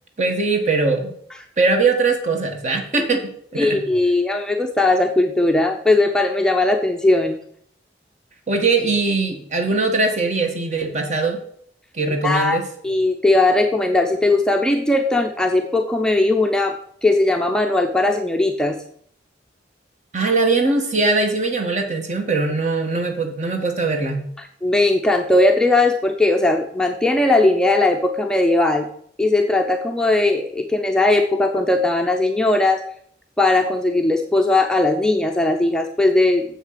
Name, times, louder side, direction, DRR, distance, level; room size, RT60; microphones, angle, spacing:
voice 1, 0.2-1.1 1.6-3.8 8.5-11.4 11.9-12.6 20.1-24.3, right 3 dB, 40° right, 4 dB, 1.6 m, -21 dB
voice 2, 3.6-7.4 12.0-18.8 24.4-28.9 29.2-32.8 33.4-36.4, left 2 dB, 5° left, 3 dB, 0.6 m, -18 dB
7.4 x 6.5 x 6.7 m, 0.65 s
head